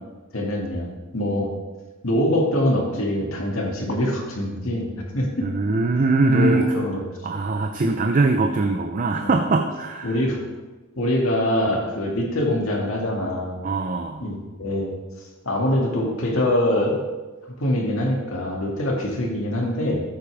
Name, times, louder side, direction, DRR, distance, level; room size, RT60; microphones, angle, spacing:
voice 1, 0.3-1.5 2.0-4.9 5.1-5.5 6.3-7.0 7.8-7.9 9.2-9.3 10.0-10.4 11.0-13.6 14.2-14.9 15.4-17.0 17.6-20.0, left 1 dB, 65° left, -1 dB, 2.3 m, -24 dB
voice 2, 5.4-6.8 7.2-10.2 13.6-14.2, right 3 dB, 40° right, 5 dB, 0.6 m, -22 dB
13.5 x 8.9 x 3.5 m, 1.2 s
head